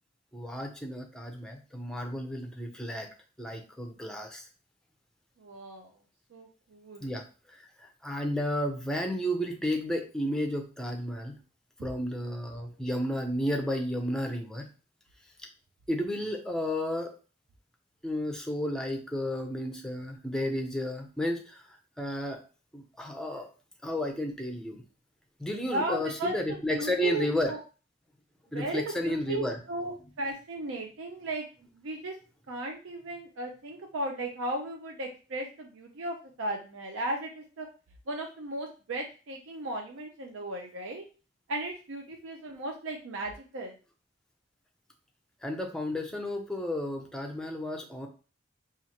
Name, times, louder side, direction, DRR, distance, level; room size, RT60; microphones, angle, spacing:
voice 1, 0.3-3.1 3.4-4.5 7.0-11.3 11.8-14.7 15.9-17.1 18.0-21.6 22.0-22.4 22.7-23.5 23.8-24.8 25.4-27.5 28.5-29.6 45.4-48.1, equal, 5° left, 3 dB, 0.5 m, -32 dB
voice 2, 5.4-5.9 6.3-7.1 25.7-26.4 26.7-27.6 28.5-32.1 32.5-37.7 38.1-41.0 41.5-43.7, right 1 dB, 85° right, 2 dB, 0.5 m, -36 dB
4.3 x 2.5 x 2.8 m, 0.36 s
head